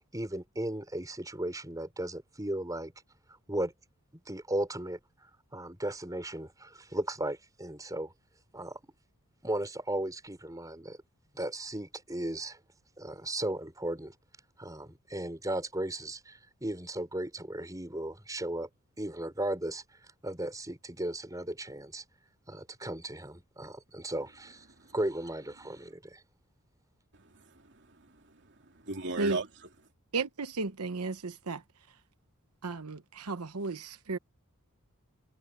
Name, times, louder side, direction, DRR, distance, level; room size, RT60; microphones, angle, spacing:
voice 1, 0.1-2.9 3.3-3.7 4.2-8.1 8.5-8.8 9.4-11.0 11.3-12.6 13.0-14.1 14.6-18.7 19.0-22.0 22.5-24.7 24.9-26.2, right 1 dB, 15° right, 4.8 m, -36 dB
voice 2, 27.1-29.7, right 3 dB, 55° right, 2.8 m, -39 dB
voice 3, 30.1-31.6 32.6-34.2, right 3 dB, 90° right, 1.0 m, -34 dB
head